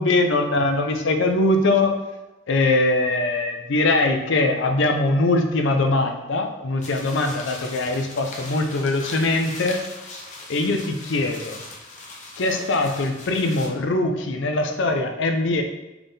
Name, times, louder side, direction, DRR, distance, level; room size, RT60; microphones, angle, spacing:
voice 1, 0.0-2.0 2.5-9.8 10.5-11.6 12.4-15.6, left 2 dB, 65° left, 5 dB, 0.5 m, -22 dB
sound 1, 6.8-13.7, left 2 dB, 40° left, 0.8 m, -39 dB
3.6 x 3.5 x 4.0 m, 1.0 s
head